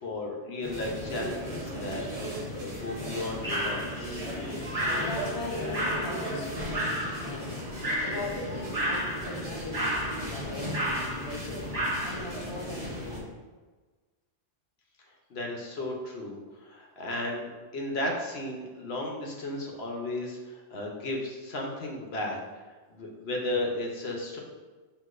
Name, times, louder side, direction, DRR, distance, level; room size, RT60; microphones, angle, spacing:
voice 1, 0.0-4.3 15.3-22.4 22.9-24.4, left 1 dB, 60° left, -1 dB, 0.9 m, -34 dB
sound 1, 0.6-13.2, equal, 30° right, 1.0 m, -32 dB
voice 2, 4.6-11.7 12.0-13.3, left 2 dB, 30° left, -2 dB, 0.5 m, -40 dB
6.4 x 2.8 x 2.5 m, 1.3 s
omnidirectional pair, 1.3 m